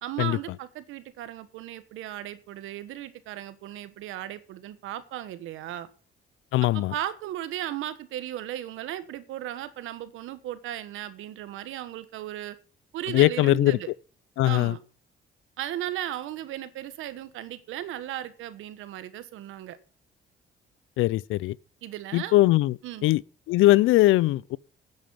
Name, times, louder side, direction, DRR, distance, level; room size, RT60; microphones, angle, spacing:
voice 1, 0.0-5.9 6.7-12.6 12.9-13.9 14.4-14.8 15.6-19.8 21.8-22.4 22.8-23.1, right 12 dB, 90° right, 1.3 m, -36 dB
voice 2, 6.5-6.9 13.1-13.8 14.4-14.7 21.0-21.6 22.1-22.7 23.0-23.2 23.5-24.6, left 17 dB, 90° left, 0.5 m, -20 dB
9.2 x 8.8 x 8.5 m
cardioid pair, 90°, 20 cm